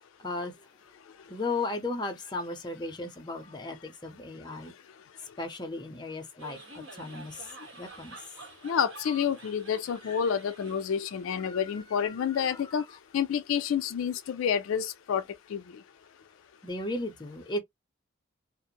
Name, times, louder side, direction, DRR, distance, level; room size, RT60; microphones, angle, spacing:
voice 1, 0.2-0.7 1.2-4.7 5.4-7.5 7.8-8.2 10.0-10.2 11.4-12.6 16.6-17.6, left 2 dB, 20° left, 0.5 m, -36 dB
sound 1, 6.4-11.3, right 2 dB, 65° right, 1.4 m, -48 dB
voice 2, 8.6-12.8 13.1-15.2 15.5-15.8, left 7 dB, 75° left, 0.4 m, -29 dB
2.5 x 2.0 x 2.7 m
head